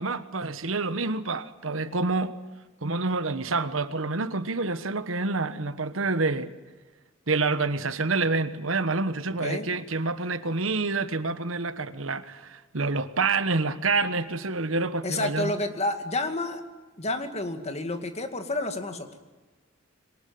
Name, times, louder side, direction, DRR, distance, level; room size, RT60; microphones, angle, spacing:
voice 1, 0.0-2.3 2.8-6.5 7.3-15.5, right 3 dB, 80° right, 1.3 m, -27 dB
voice 2, 15.0-16.6 17.0-19.1, left 2 dB, 35° left, 2.2 m, -30 dB
23.0 x 19.5 x 9.4 m
head